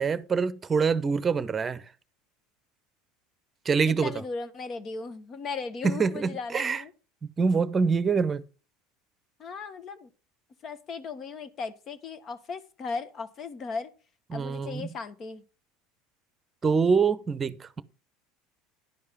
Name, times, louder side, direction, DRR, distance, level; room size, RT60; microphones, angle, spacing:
voice 1, 0.0-1.8 3.6-4.1 5.8-6.8 7.2-8.4 14.3-14.9 16.6-17.8, right 5 dB, 25° right, 0.8 m, -25 dB
voice 2, 3.8-6.9 9.4-10.1 10.6-13.9 14.3-15.4, left 4 dB, 40° left, 1.2 m, -37 dB
11.0 x 4.8 x 5.5 m
hypercardioid pair, 90°, 0 cm